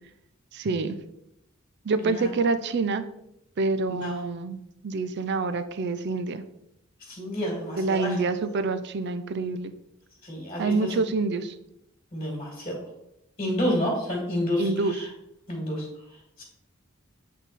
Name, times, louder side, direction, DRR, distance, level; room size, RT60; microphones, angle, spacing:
voice 1, 0.5-1.0 1.8-3.0 3.6-6.4 7.8-9.7 10.6-11.5 14.6-15.1, right 3 dB, 55° right, 11 dB, 0.5 m, -27 dB
voice 2, 3.9-4.2 7.1-8.5 10.2-10.9 12.1-12.8 13.4-15.1 15.5-15.9 16.4-16.5, equal, 25° left, -2 dB, 2.0 m, -30 dB
8.1 x 3.7 x 4.1 m, 0.81 s
head